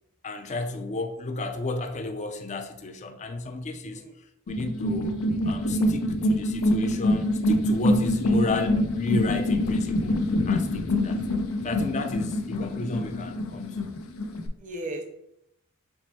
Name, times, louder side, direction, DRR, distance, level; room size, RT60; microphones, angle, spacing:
voice 1, 0.2-4.0 4.5-10.1 10.4-11.2 11.6-13.9, left 3 dB, 35° left, 0.5 m, -33 dB
sound 1, 4.5-14.5, left 1 dB, 85° left, 0.5 m, -25 dB
voice 2, 14.6-15.0, right 1 dB, 40° right, 0.7 m, -36 dB
4.6 x 2.1 x 4.1 m
head